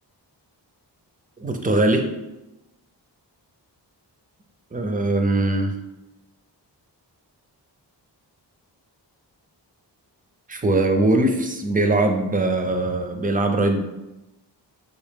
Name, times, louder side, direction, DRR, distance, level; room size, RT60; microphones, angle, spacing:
voice 1, 1.4-2.1 4.7-5.8 10.5-13.8, right 2 dB, 20° right, 5 dB, 0.4 m, -21 dB
3.4 x 2.8 x 3.4 m, 0.98 s
wide cardioid pair, 85°, 43 cm